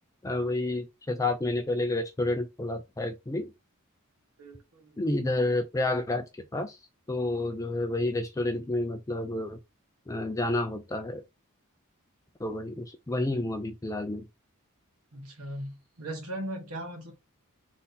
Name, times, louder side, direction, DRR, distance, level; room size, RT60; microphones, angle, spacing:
voice 1, 0.2-3.5 5.0-6.2 6.5-6.8 7.1-9.6 10.1-11.2 12.4-14.3, left 2 dB, 15° left, 0.4 m, -30 dB
voice 2, 4.4-5.0 15.1-17.1, right 1 dB, 80° right, 1.4 m, -38 dB
3.4 x 2.7 x 4.0 m
head